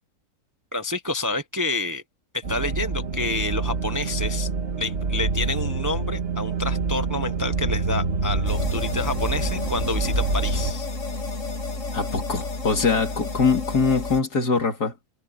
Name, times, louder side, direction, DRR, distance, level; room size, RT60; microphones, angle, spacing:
voice 1, 0.7-2.0 2.3-4.5 4.8-10.9, left 2 dB, 15° right, 0.8 m, -28 dB
sound 1, 2.4-10.7, right 4 dB, 45° right, 2.0 m, -26 dB
sound 2, 8.5-14.2, left 3 dB, 50° left, 2.6 m, -31 dB
voice 2, 11.9-14.9, left 4 dB, 85° left, 3.4 m, -23 dB
omnidirectional pair, 1.6 m